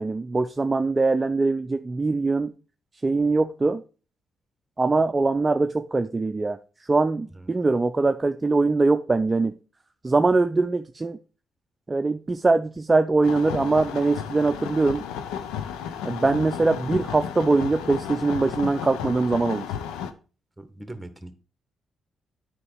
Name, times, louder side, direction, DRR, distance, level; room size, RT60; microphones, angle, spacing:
voice 1, 0.0-2.5 3.0-3.8 4.8-6.6 6.9-9.5 10.0-11.2 11.9-15.0 16.0-19.7, right 3 dB, 30° right, 8 dB, 0.5 m, -22 dB
sound 1, 13.2-20.1, left 8 dB, 85° left, 0.7 m, -33 dB
voice 2, 20.6-21.3, right 1 dB, 10° right, 10 dB, 1.6 m, -40 dB
8.7 x 5.1 x 4.6 m, 0.35 s
supercardioid pair, 50°, 0 cm